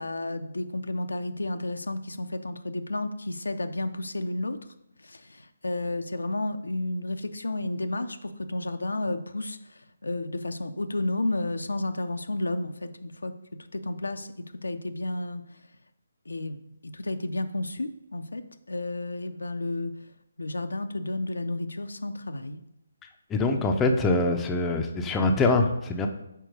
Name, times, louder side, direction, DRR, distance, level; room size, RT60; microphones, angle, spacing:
voice 1, 0.0-4.6 5.0-13.3 13.7-15.6 16.3-19.9 20.4-22.6, left 2 dB, 80° left, 9 dB, 0.5 m, -32 dB
voice 2, 23.3-26.1, left 2 dB, 10° left, 4 dB, 0.5 m, -24 dB
4.5 x 4.3 x 5.1 m, 0.81 s
figure-of-eight pair, 150°, 0 cm